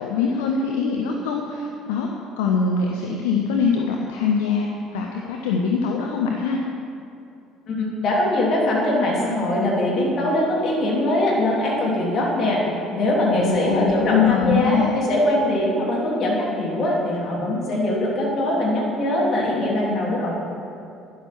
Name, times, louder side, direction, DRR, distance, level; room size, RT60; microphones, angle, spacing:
voice 1, 0.0-2.1 2.4-4.7 4.9-6.6 13.3-14.9, left 5 dB, 70° left, 1 dB, 0.8 m, -23 dB
voice 2, 7.7-12.6 12.9-20.3, left 1 dB, 50° left, -3 dB, 3.3 m, -22 dB
12.5 x 10.0 x 4.5 m, 2.6 s
figure-of-eight pair, 60°, 0 cm